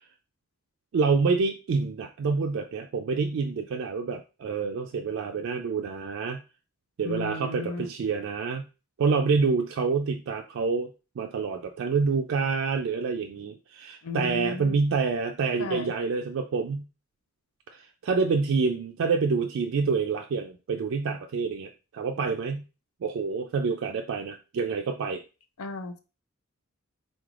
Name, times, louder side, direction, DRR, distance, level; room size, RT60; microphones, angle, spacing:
voice 1, 0.9-6.4 7.0-8.6 9.0-10.9 11.2-16.8 17.7-22.6 23.0-25.2, right 4 dB, 60° right, 4 dB, 0.3 m, -27 dB
voice 2, 7.0-7.9 14.0-14.7 15.6-15.9 25.6-26.0, left 4 dB, 90° left, 8 dB, 0.6 m, -34 dB
3.9 x 3.2 x 2.4 m, 0.32 s
head